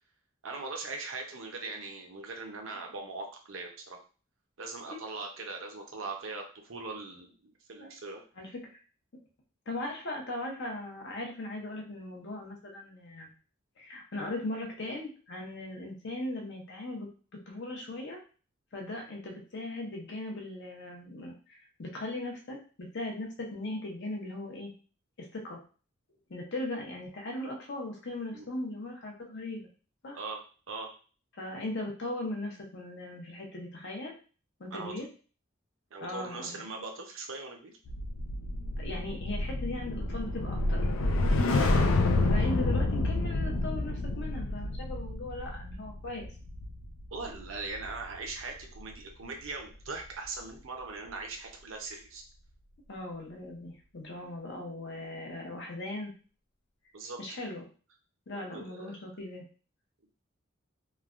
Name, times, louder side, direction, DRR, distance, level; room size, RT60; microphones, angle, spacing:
voice 1, 0.4-4.0 4.6-8.2 28.3-28.5 30.1-30.4 30.7-30.9 34.7-34.9 35.9-37.8 47.1-52.2 56.9-57.2 58.3-59.0, right 3 dB, 75° right, 2 dB, 0.6 m, -40 dB
voice 2, 9.7-13.3 13.8-17.1 17.5-18.2 18.7-24.7 25.2-25.6 26.3-29.7 30.0-30.2 31.3-34.1 34.6-35.1 36.0-36.5 38.8-40.9 42.2-46.3 52.9-56.1 57.2-57.7 58.3-59.4, left 2 dB, 60° left, 1 dB, 0.7 m, -38 dB
sound 1, 37.9-48.3 48.6-48.9, left 2 dB, 90° left, 0.4 m, -29 dB
3.1 x 2.2 x 2.5 m, 0.38 s
head